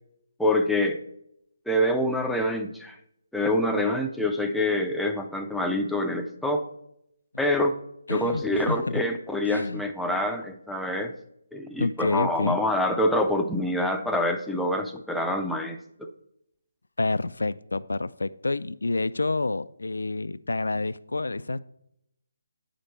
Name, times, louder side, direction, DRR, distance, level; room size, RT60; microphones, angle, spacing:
voice 1, 0.4-1.0 1.7-3.0 3.3-6.7 7.4-7.8 8.1-11.1 11.5-16.1, left 1 dB, ahead, 3 dB, 0.4 m, -26 dB
voice 2, 8.1-9.0 9.5-9.9 11.8-12.6 17.0-21.6, left 3 dB, 90° left, 16 dB, 0.3 m, -28 dB
9.1 x 5.1 x 4.3 m, 0.79 s
hypercardioid pair, 165°, 0 cm